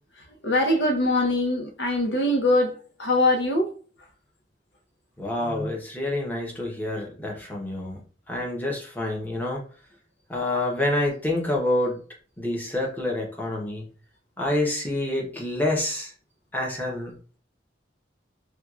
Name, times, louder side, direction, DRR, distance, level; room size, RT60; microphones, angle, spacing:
voice 1, 0.3-3.7 5.4-5.7, left 1 dB, 75° left, 0.7 m, -23 dB
voice 2, 5.2-8.0 8.3-9.6 10.3-12.0 12.4-13.8 14.4-16.1 16.5-17.1, left 1 dB, 10° left, 0.8 m, -27 dB
4.4 x 2.3 x 2.4 m
head